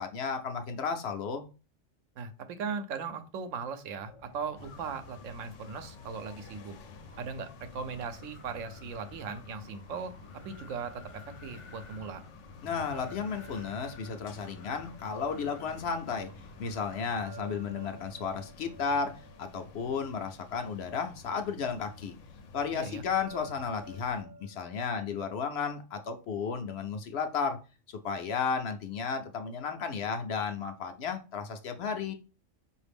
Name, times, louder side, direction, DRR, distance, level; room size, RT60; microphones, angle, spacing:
voice 1, 0.0-1.5 12.6-16.3 16.6-22.1 22.5-27.6 27.9-32.1, left 5 dB, 65° left, 6 dB, 0.8 m, -33 dB
voice 2, 2.2-6.7 7.2-10.1 10.4-12.2 22.7-23.0, right 5 dB, 85° right, 9 dB, 1.0 m, -38 dB
Wind, 3.9-17.6, left 3 dB, 40° left, 0.4 m, -53 dB
sound 1, 4.6-24.2, left 4 dB, 80° left, 1.0 m, -51 dB
sound 2, 12.9-16.0 17.2-20.7 23.2-26.3, right 2 dB, 50° right, 0.5 m, -52 dB
4.8 x 2.6 x 3.4 m, 0.33 s
omnidirectional pair, 1.3 m